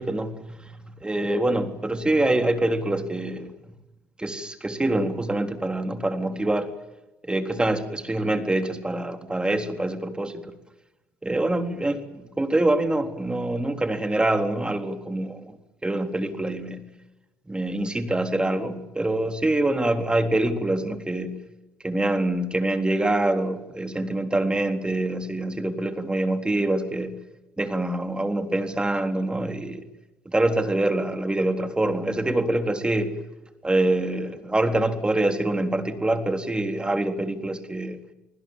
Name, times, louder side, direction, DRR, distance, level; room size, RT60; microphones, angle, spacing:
voice 1, 0.0-3.6 4.2-6.7 7.2-10.5 11.2-15.6 15.8-16.8 17.5-21.4 21.8-27.2 27.6-29.8 30.3-33.1 33.6-38.0, right 1 dB, 15° right, 7 dB, 3.7 m, -25 dB
29.5 x 20.0 x 7.5 m, 1.0 s
hypercardioid pair, 65°, 6 cm